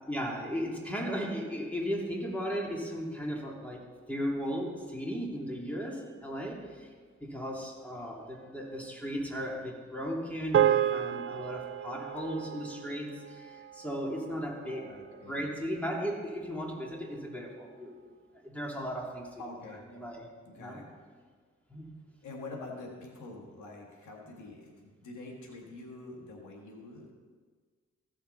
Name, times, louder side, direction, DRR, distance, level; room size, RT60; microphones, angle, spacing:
voice 1, 0.1-3.8 4.1-6.9 7.2-18.1 18.4-19.4 19.9-20.3 20.6-20.8 21.7-21.9, equal, 5° left, -2 dB, 3.0 m, -36 dB
sound 1, 10.5-15.1, right 10 dB, 45° right, 0.4 m, -31 dB
voice 2, 14.6-15.5 19.4-19.8 20.2-20.9 22.2-27.1, left 2 dB, 90° left, 1 dB, 1.7 m, -46 dB
15.0 x 5.8 x 4.1 m, 1.5 s
supercardioid pair, 45°, 29 cm